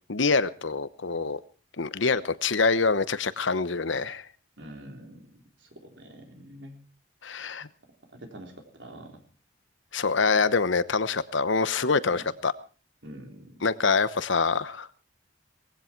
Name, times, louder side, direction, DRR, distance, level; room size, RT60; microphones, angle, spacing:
voice 1, 0.1-1.4 1.8-4.2 7.2-7.7 9.9-12.5 13.6-14.9, left 4 dB, 75° left, 15 dB, 1.0 m, -25 dB
voice 2, 4.6-6.8 8.1-9.2 12.1-12.2 13.0-13.5, right 1 dB, 70° right, 3 dB, 3.8 m, -46 dB
19.5 x 15.5 x 4.5 m, 0.37 s
head